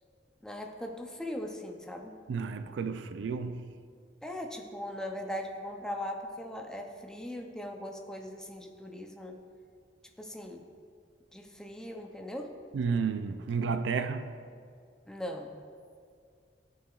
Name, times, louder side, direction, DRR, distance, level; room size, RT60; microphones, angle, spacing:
voice 1, 0.4-2.1 4.2-9.4 10.2-10.6 11.3-12.5 15.1-15.5, left 1 dB, 5° left, 0.5 m, -39 dB
voice 2, 2.3-3.7 12.7-14.4, right 5 dB, 80° right, 0.3 m, -32 dB
13.0 x 4.8 x 2.4 m
head